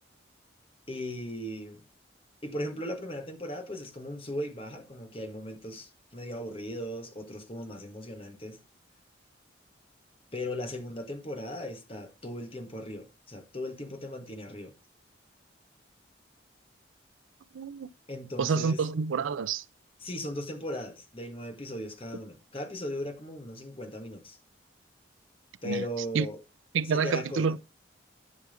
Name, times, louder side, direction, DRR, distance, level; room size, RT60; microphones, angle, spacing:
voice 1, 0.9-1.8 2.4-8.6 10.3-14.7 18.1-18.8 20.0-24.4 25.6-26.4 26.9-27.5, left 1 dB, 30° left, 1.4 m, -37 dB
voice 2, 17.5-17.9 18.4-19.6 25.7-25.9 26.1-26.3 26.7-27.6, right 5 dB, 90° right, 0.4 m, -28 dB
11.0 x 6.2 x 3.7 m
head